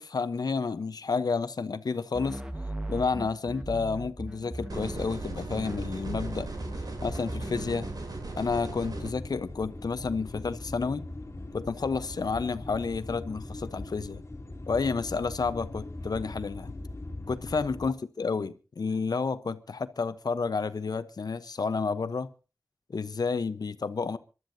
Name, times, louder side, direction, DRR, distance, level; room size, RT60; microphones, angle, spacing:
voice 1, 0.0-2.4 2.9-6.5 7.0-7.9 8.4-11.0 11.5-14.2 14.7-16.7 17.3-22.3 22.9-24.2, left 4 dB, 90° left, 1.0 m, -30 dB
sound 1, 2.1-5.2 5.5-8.0, right 1 dB, 15° right, 1.5 m, -38 dB
sound 2, 4.7-9.1, right 2 dB, 80° right, 3.5 m, -37 dB
sound 3, 8.9-17.9, left 2 dB, 45° left, 2.2 m, -40 dB
26.5 x 12.5 x 2.8 m
wide cardioid pair, 70°, 7 cm